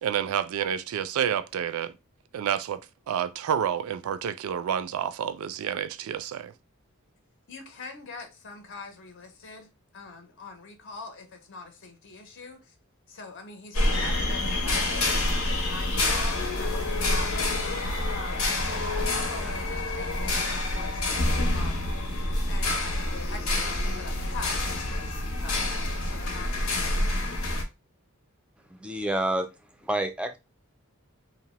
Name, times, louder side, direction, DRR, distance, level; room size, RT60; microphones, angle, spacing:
voice 1, 0.0-1.9 2.3-2.8 3.1-6.5, right 9 dB, 85° right, 0.3 m, -29 dB
voice 2, 7.5-12.7 13.1-17.7 18.1-21.8 22.5-27.0, left 3 dB, 60° left, 0.6 m, -43 dB
sound 1, 13.7-27.6, left 2 dB, 90° left, 0.8 m, -27 dB
voice 3, 28.7-30.4, right 1 dB, 5° right, 0.3 m, -29 dB
2.8 x 2.0 x 2.9 m
head